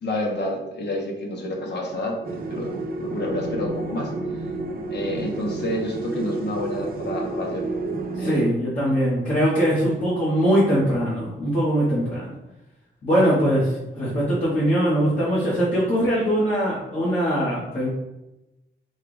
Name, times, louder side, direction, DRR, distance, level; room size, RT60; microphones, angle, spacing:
voice 1, 0.0-2.2 2.5-4.1 4.9-7.7 8.2-8.4, left 1 dB, 55° left, 0 dB, 1.0 m, -29 dB
sound 1, 2.2-8.5, right 3 dB, 45° right, 0.6 m, -30 dB
voice 2, 8.2-12.2 13.0-17.9, equal, 35° left, -9 dB, 1.2 m, -21 dB
4.5 x 2.4 x 4.8 m, 0.96 s
wide cardioid pair, 175°, 21 cm